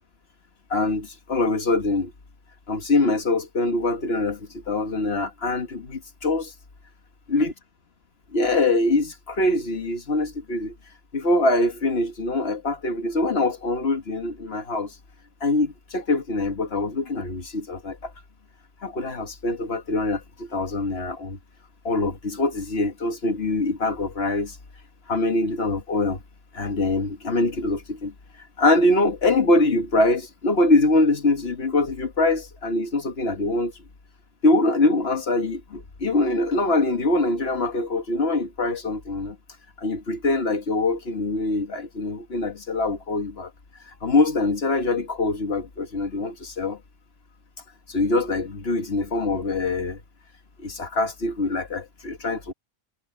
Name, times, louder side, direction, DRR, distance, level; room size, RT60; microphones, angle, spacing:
voice 1, 0.7-2.1 2.7-6.5 7.3-7.5 8.3-10.8 11.1-15.0 15.4-18.1 18.8-21.4 21.9-24.6 25.1-26.2 26.5-28.1 28.6-33.7 34.4-39.4 39.8-43.5 44.0-46.8 47.9-50.0 50.6-52.5, left 2 dB, 70° left, 1.9 m, -23 dB
omnidirectional pair, 1.1 m